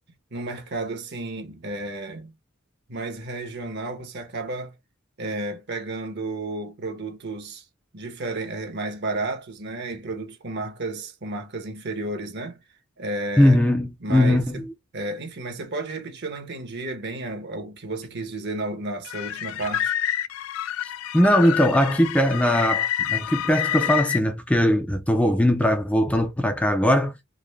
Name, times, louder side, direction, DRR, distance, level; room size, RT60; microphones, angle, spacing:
voice 1, 0.3-2.3 2.9-4.7 5.2-7.6 7.9-12.6 13.0-13.7 14.0-14.6 14.9-19.9, right 2 dB, 55° right, 1.0 m, -32 dB
voice 2, 13.4-14.4 21.1-27.1, left 1 dB, 5° left, 0.4 m, -20 dB
sound 1, 19.0-24.2, left 11 dB, 85° left, 0.4 m, -28 dB
3.8 x 2.1 x 3.2 m
head